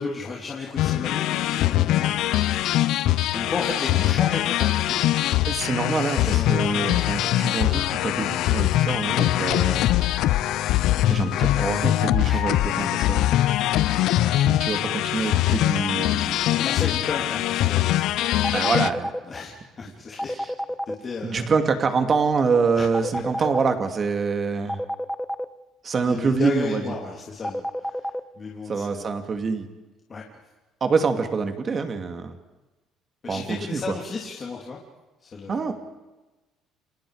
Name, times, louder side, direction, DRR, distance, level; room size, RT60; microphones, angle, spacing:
voice 1, 0.0-2.1 3.3-5.0 6.2-6.8 9.3-9.5 11.1-11.4 12.2-12.4 16.4-18.2 19.2-20.5 20.9-21.5 22.7-23.2 26.0-28.1 28.4-29.1 30.1-30.2 33.2-34.8 35.2-35.7, left 4 dB, 30° left, -2 dB, 3.5 m, -34 dB
sound 1, 0.8-18.9, left 14 dB, 70° left, 0.8 m, -22 dB
voice 2, 5.5-9.9 11.1-13.3 14.3-16.4 18.5-19.1 21.2-24.8 25.8-26.8 28.7-29.7 30.8-32.4 33.3-33.8 35.5-35.7, right 5 dB, 30° right, 6 dB, 2.7 m, -25 dB
sound 2, 18.4-19.2 20.2-20.9 22.9-23.7 24.7-25.4 27.4-28.2, equal, ahead, 0.8 m, -28 dB
30.0 x 27.0 x 5.1 m, 1.1 s
cardioid pair, 150°, 0 cm